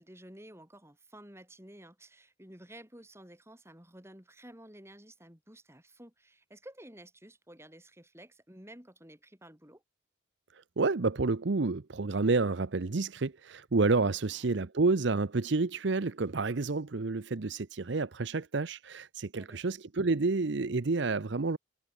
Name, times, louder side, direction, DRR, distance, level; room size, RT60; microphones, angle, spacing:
voice 1, 0.0-9.8 14.2-14.5 19.3-19.6, right 1 dB, 15° right, 6.8 m, -52 dB
voice 2, 10.8-21.6, right 3 dB, 60° right, 0.7 m, -29 dB
head